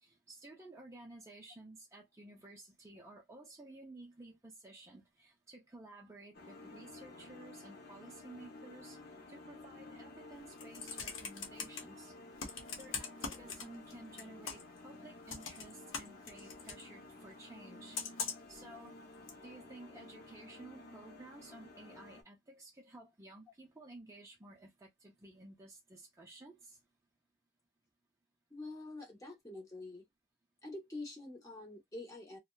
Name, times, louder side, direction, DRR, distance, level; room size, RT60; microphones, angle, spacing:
voice 1, 0.0-12.1 12.4-18.0 18.3-18.9 19.4-26.8, right 2 dB, 15° right, 0.4 m, -54 dB
sound 1, 6.3-22.2, left 2 dB, 50° left, 0.6 m, -53 dB
Computer keyboard, 10.4-11.8 12.4-13.9 14.2-14.8 15.3-16.8 17.9-18.5 19.3-19.4, left 5 dB, 75° left, 0.8 m, -41 dB
voice 2, 28.5-30.1 30.6-32.4, left 2 dB, 15° left, 0.8 m, -46 dB
2.7 x 2.1 x 2.2 m
head